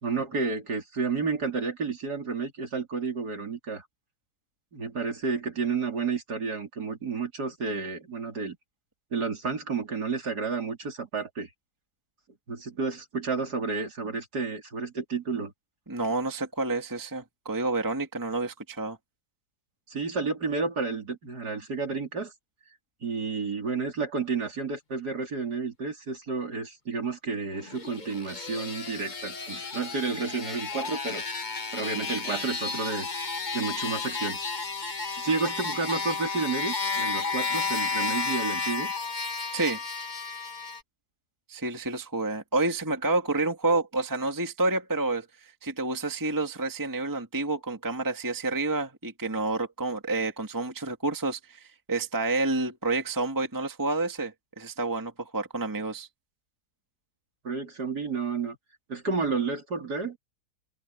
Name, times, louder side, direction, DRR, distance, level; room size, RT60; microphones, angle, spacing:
voice 1, 0.0-3.9 4.7-8.6 9.1-11.5 12.5-15.5 19.9-22.3 23.0-31.3 31.7-33.1 33.5-34.4 35.2-38.9 57.4-58.6 58.9-60.2, right 4 dB, 50° right, 4.0 m, -31 dB
voice 2, 15.9-19.0 39.5-39.8 41.5-56.1, right 2 dB, 10° right, 1.7 m, -29 dB
sound 1, 27.6-40.8, left 4 dB, 30° left, 1.0 m, -32 dB
open air
omnidirectional pair, 2.2 m